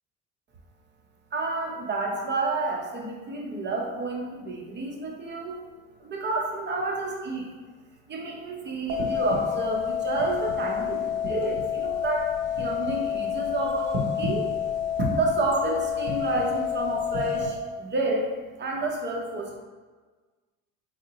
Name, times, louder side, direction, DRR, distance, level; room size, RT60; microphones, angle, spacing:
voice 1, 1.3-5.6 6.0-7.5 8.1-12.3 12.6-14.5 15.0-18.3 18.6-19.6, right 3 dB, 35° right, -1 dB, 0.8 m, -30 dB
sound 1, 8.9-17.5, left 7 dB, 80° right, 0.8 m, -28 dB
4.5 x 2.1 x 2.9 m, 1.4 s
cardioid pair, 100°, 30 cm